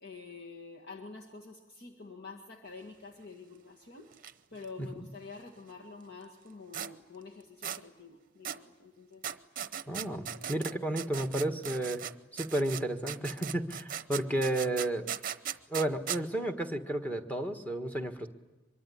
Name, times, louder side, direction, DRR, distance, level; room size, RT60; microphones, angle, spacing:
voice 1, 0.0-4.1 4.5-9.2 10.1-10.7 11.0-11.1, left 4 dB, 50° left, 0 dB, 2.0 m, -48 dB
sound 1, 4.1-4.3 4.6-4.7 6.7-6.9 7.6-7.8 8.4-8.6 9.2-12.1 12.4-16.2, right 9 dB, 40° right, 0.8 m, -38 dB
voice 2, 9.9-12.0 12.3-15.1 15.7-18.3, right 1 dB, 5° left, 5 dB, 1.5 m, -32 dB
24.0 x 23.5 x 10.0 m, 1.1 s
head